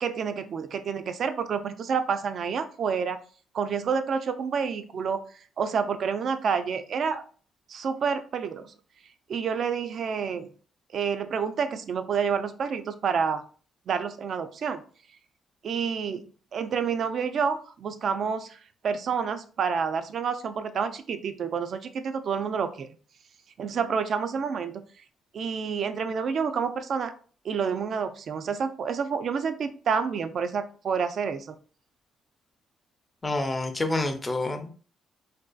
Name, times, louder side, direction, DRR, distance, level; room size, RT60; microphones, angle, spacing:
voice 1, 0.0-3.2 3.5-5.2 5.6-7.2 7.7-8.7 9.3-10.5 10.9-13.4 13.9-14.8 15.6-18.6 18.8-22.9 23.6-24.8 25.3-27.1 27.4-31.6, right 6 dB, 60° right, 9 dB, 0.3 m, -28 dB
voice 2, 33.2-34.7, left 2 dB, 20° left, 6 dB, 0.5 m, -28 dB
2.5 x 2.4 x 2.2 m, 0.40 s
cardioid pair, 90°, 0 cm